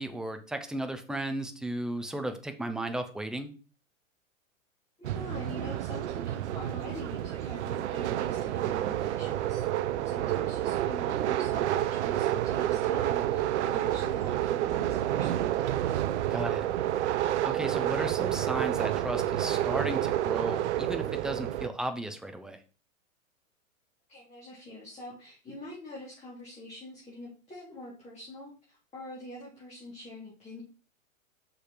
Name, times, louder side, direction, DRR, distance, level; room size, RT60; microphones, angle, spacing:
voice 1, 0.0-3.5 16.3-16.6 17.4-22.6, right 1 dB, ahead, 7 dB, 0.5 m, -35 dB
voice 2, 5.0-9.6 10.0-16.0 24.1-30.6, left 1 dB, 15° left, -6 dB, 3.5 m, -45 dB
sound 1, 5.0-21.7, right 12 dB, 55° right, 0.6 m, -29 dB
6.4 x 5.3 x 4.5 m, 0.36 s
hypercardioid pair, 115°, 41 cm